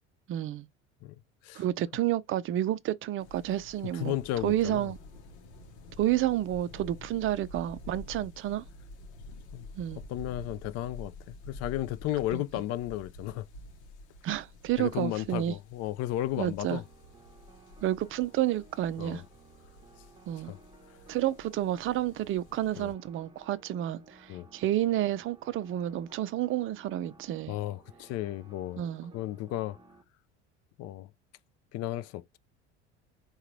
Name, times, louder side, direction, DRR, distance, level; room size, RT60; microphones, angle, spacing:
voice 1, 0.3-0.7 1.5-4.2 4.4-5.0 6.0-8.6 9.8-10.0 12.3-12.4 14.2-15.5 16.4-16.8 17.8-19.2 20.3-20.5 21.1-27.5 28.8-29.1, right 12 dB, 40° right, 0.4 m, -30 dB
sound 1, 3.2-22.9, left 2 dB, 75° left, 0.8 m, -49 dB
voice 2, 3.9-4.9 9.5-9.7 10.1-13.4 14.8-16.8 19.0-19.2 20.4-20.6 22.7-22.9 24.3-24.5 27.5-28.8 29.1-29.8 30.8-31.1 31.7-32.4, left 14 dB, 50° left, 0.4 m, -34 dB
sound 2, 16.6-30.0, right 3 dB, 15° right, 0.9 m, -57 dB
3.7 x 2.3 x 3.0 m
hypercardioid pair, 75°, 34 cm